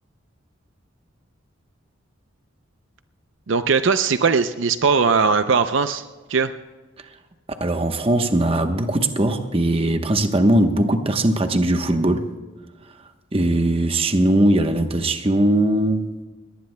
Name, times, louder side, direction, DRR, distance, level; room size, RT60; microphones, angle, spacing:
voice 1, 3.5-6.0 6.3-6.5, right 5 dB, 65° right, 0.5 m, -19 dB
voice 2, 7.6-12.3 13.3-16.0, right 1 dB, 25° right, 1.0 m, -20 dB
21.5 x 18.5 x 2.2 m
head